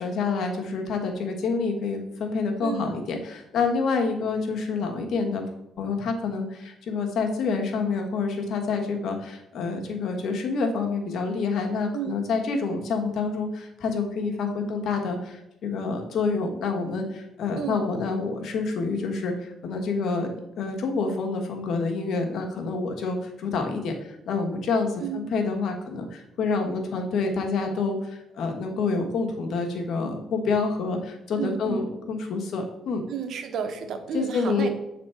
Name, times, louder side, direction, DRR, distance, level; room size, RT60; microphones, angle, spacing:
voice 1, 0.0-5.4 5.8-20.3 20.6-33.0 34.1-34.7, left 4 dB, 70° left, 3 dB, 1.4 m, -28 dB
voice 2, 2.6-2.9 11.9-12.2 17.6-17.8 25.0-25.2 31.4-31.9 33.1-34.7, right 7 dB, 70° right, 6 dB, 1.0 m, -31 dB
7.6 x 4.2 x 4.4 m, 0.86 s
cardioid pair, 90°, 0 cm